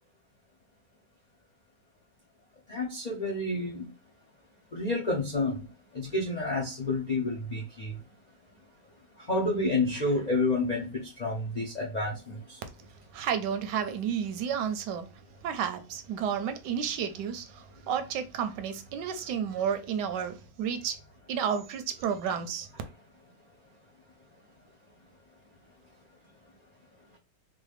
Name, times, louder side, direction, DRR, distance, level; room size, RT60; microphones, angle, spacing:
voice 1, 2.7-3.9 4.7-5.5 5.9-7.9 9.3-10.8 11.2-12.2, left 2 dB, 80° left, 0.3 m, -29 dB
voice 2, 13.1-15.1 15.4-21.0 21.3-22.7, right 8 dB, 85° right, 1.2 m, -31 dB
4.0 x 2.1 x 3.2 m
omnidirectional pair, 1.9 m